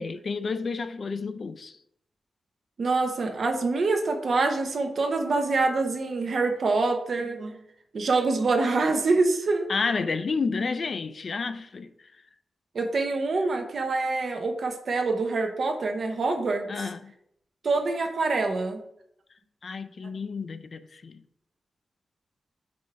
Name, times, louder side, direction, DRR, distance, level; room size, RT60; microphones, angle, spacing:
voice 1, 0.0-1.8 9.7-12.1 16.7-17.2 19.6-21.2, left 4 dB, 45° left, 0.3 m, -31 dB
voice 2, 2.8-7.6 7.9-9.7 12.7-16.7 17.6-18.8, right 3 dB, 55° right, 0.8 m, -25 dB
5.0 x 3.5 x 5.6 m
wide cardioid pair, 165°, 0 cm